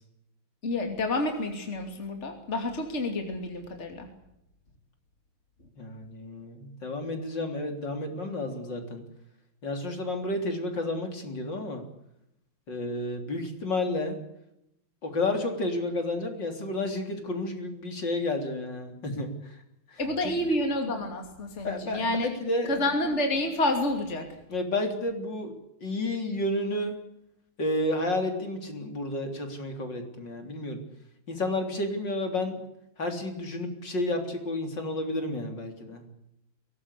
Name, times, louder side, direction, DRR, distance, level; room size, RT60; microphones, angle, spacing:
voice 1, 0.6-4.1 20.0-22.3 22.6-24.3, left 1 dB, 30° left, 4 dB, 3.0 m, -29 dB
voice 2, 5.8-9.0 9.6-11.8 12.7-14.2 15.0-19.6 19.9-20.3 21.6-22.7 24.5-25.5 25.8-26.9 27.6-30.8 31.3-32.6 33.0-36.0, left 2 dB, 55° left, 5 dB, 4.2 m, -31 dB
23.0 x 18.5 x 8.4 m, 0.81 s
omnidirectional pair, 2.4 m